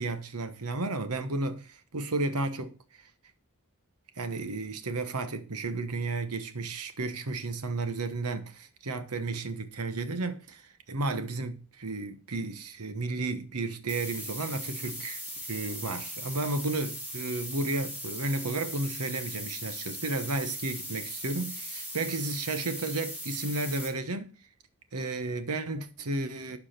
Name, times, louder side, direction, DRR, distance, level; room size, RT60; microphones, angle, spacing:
voice 1, 0.0-2.7 4.2-10.6 10.9-15.2 15.5-24.3 24.9-26.6, right 2 dB, 80° right, 1.1 m, -33 dB
sound 1, 13.9-23.9, equal, 5° right, 2.7 m, -39 dB
12.0 x 4.8 x 5.8 m
head